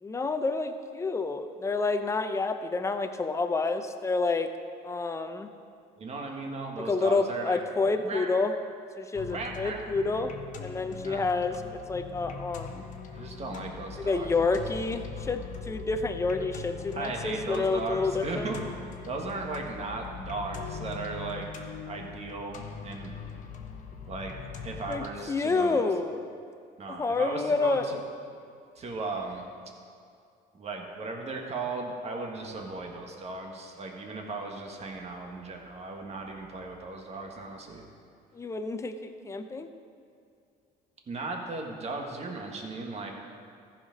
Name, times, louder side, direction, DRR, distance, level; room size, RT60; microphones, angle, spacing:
voice 1, 0.0-4.5 4.8-5.5 6.9-8.5 9.0-10.3 10.6-12.9 14.0-18.5 24.9-26.2 26.9-27.9 38.3-39.7, left 3 dB, 15° left, 7 dB, 0.6 m, -29 dB
voice 2, 6.0-8.3 9.3-9.8 11.0-11.3 13.1-14.6 16.9-18.6 19.1-21.5 21.9-23.2 24.1-24.4 24.6-25.8 26.8-28.0 28.8-29.5 30.5-37.8 41.1-43.1, right 3 dB, 40° right, 1 dB, 1.6 m, -36 dB
sound 1, 9.1-25.1, left 6 dB, 50° left, 1.0 m, -41 dB
14.5 x 5.8 x 5.2 m, 2.3 s
cardioid pair, 110°, 17 cm